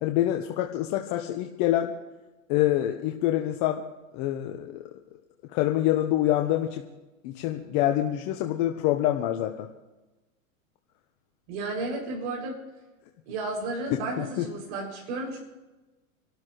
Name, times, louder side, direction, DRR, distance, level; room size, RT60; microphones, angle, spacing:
voice 1, 0.0-1.9 2.5-3.8 4.1-4.8 5.5-6.8 7.2-9.7 14.2-14.5, left 13 dB, 45° left, 4 dB, 1.2 m, -26 dB
voice 2, 11.5-12.6 13.3-15.4, right 2 dB, 60° right, -1 dB, 7.2 m, -33 dB
26.5 x 13.0 x 3.3 m, 1.1 s
hypercardioid pair, 120°, 41 cm